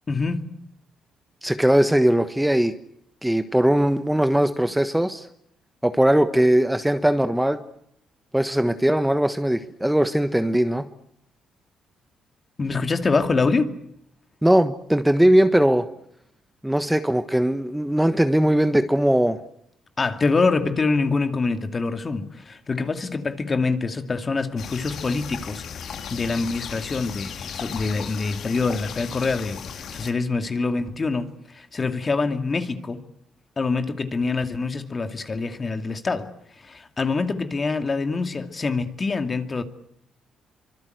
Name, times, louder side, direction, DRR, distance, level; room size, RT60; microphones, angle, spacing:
voice 1, 0.1-0.5 12.6-13.8 20.0-29.6 29.9-33.0 33.6-36.3 36.6-39.6, left 4 dB, 35° left, 7 dB, 2.5 m, -25 dB
voice 2, 1.4-2.7 3.2-5.3 5.8-7.6 8.3-10.9 14.4-15.9 16.6-19.4, right 1 dB, 5° right, 9 dB, 1.3 m, -20 dB
sound 1, 24.6-30.1, left 7 dB, 65° left, 2.6 m, -36 dB
25.0 x 24.5 x 8.0 m, 0.74 s
cardioid pair, 90°, 0 cm